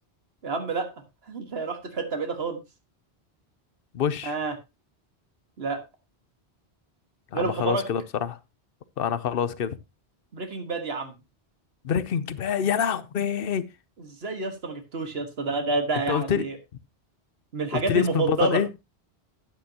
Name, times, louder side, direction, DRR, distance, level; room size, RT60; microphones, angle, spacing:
voice 1, 0.4-0.9 1.3-2.6 4.2-4.5 5.6-5.8 7.3-7.8 10.3-11.1 14.0-16.6 17.5-18.6, right 3 dB, 65° right, 1.7 m, -29 dB
voice 2, 3.9-4.3 7.3-8.4 9.0-9.8 11.8-13.7 16.1-16.5 17.7-18.7, left 8 dB, 60° left, 0.8 m, -26 dB
11.5 x 9.1 x 2.8 m
omnidirectional pair, 1.1 m